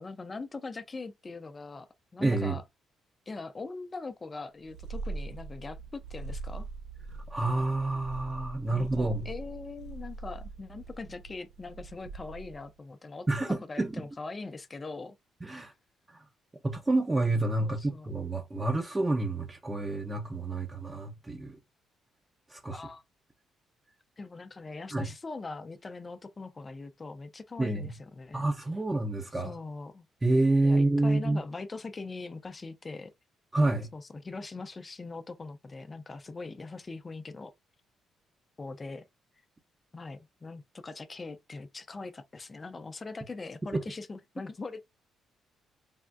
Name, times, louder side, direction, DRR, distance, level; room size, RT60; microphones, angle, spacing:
voice 1, 0.0-1.9 2.1-2.6 3.3-6.7 8.7-15.2 15.6-15.7 17.6-18.1 22.7-23.0 24.2-28.4 29.4-30.0 30.6-33.1 33.9-37.5 38.6-39.1 39.9-44.8, left 3 dB, 30° left, 0.4 m, -41 dB
voice 2, 2.2-2.6 7.3-9.3 13.3-14.0 15.4-15.7 16.1-16.2 16.6-21.6 22.5-22.9 24.9-25.1 27.6-27.9 28.3-29.6 30.2-31.4 33.5-33.9 43.7-43.8, right 2 dB, 20° right, 0.5 m, -28 dB
Purr, 4.6-12.7, right 3 dB, 85° right, 0.3 m, -42 dB
3.4 x 2.1 x 2.3 m
cardioid pair, 90°, 0 cm